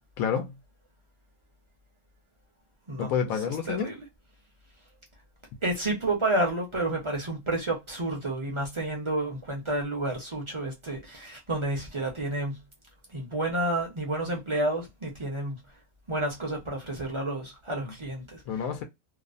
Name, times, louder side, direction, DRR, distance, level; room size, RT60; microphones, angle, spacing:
voice 1, 0.2-0.5 3.0-3.9 17.8-17.9 18.5-18.8, left 7 dB, 80° left, 1.0 m, -29 dB
voice 2, 3.7-4.0 5.6-12.6 13.1-15.6 16.1-18.4, right 1 dB, 30° right, 0.5 m, -30 dB
2.8 x 2.0 x 2.4 m
omnidirectional pair, 1.5 m